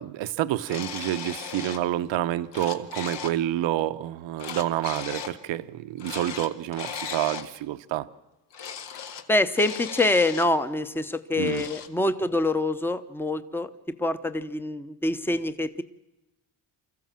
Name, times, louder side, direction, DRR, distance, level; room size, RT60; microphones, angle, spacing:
voice 1, 0.0-8.1 11.4-11.7, right 13 dB, 80° right, 11 dB, 1.0 m, -28 dB
sound 1, 0.6-1.9 2.3-3.4 4.4-5.4 6.0-7.5 8.5-9.2 9.5-10.5 11.4-11.9, left 7 dB, 70° left, 1.8 m, -37 dB
voice 2, 9.3-15.8, left 2 dB, 5° left, 11 dB, 0.9 m, -25 dB
25.5 x 14.5 x 7.5 m, 1.0 s
cardioid pair, 120°, 44 cm